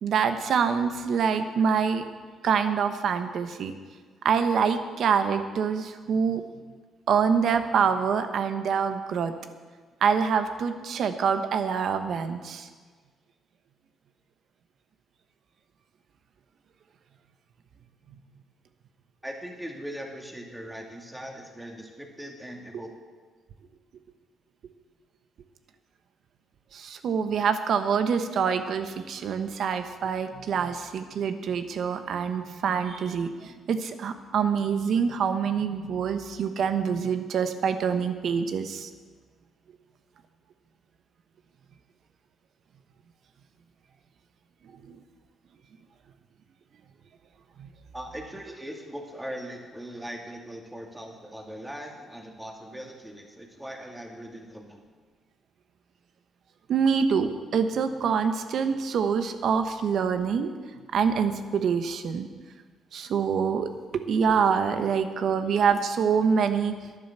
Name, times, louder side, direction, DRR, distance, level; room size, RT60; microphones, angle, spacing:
voice 1, 0.0-2.0 2.4-3.7 4.2-6.4 7.1-9.3 10.0-12.7 22.7-22.8 26.7-38.9 44.7-45.0 47.6-47.7 56.7-60.5 60.9-62.3 62.9-66.7, right 6 dB, 65° right, 9 dB, 1.1 m, -25 dB
voice 2, 19.2-22.9 47.9-54.8, equal, 10° right, 2 dB, 2.4 m, -40 dB
11.0 x 10.0 x 7.4 m, 1.5 s
cardioid pair, 90°, 0 cm